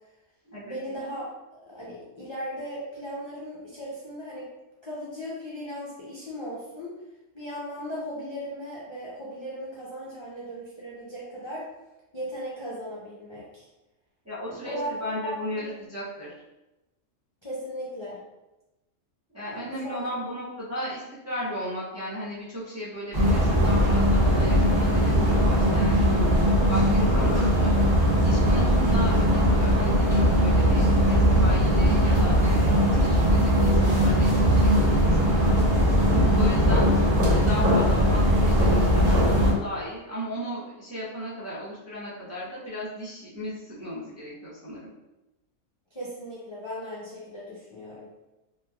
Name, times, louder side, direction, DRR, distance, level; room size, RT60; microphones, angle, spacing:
voice 1, 0.6-4.5 4.8-6.9 7.3-11.7 12.1-13.7 14.5-15.6 17.4-18.2 19.5-20.1 45.9-48.1, equal, 35° left, -8 dB, 0.4 m, -37 dB
voice 2, 14.2-16.3 19.3-26.2 26.7-27.7 28.2-35.6 36.3-36.9 37.2-44.9, equal, 20° right, -8 dB, 0.5 m, -35 dB
sound 1, 23.1-39.5, equal, 45° right, 1.0 m, -20 dB
3.2 x 2.8 x 2.3 m, 1.0 s
omnidirectional pair, 1.4 m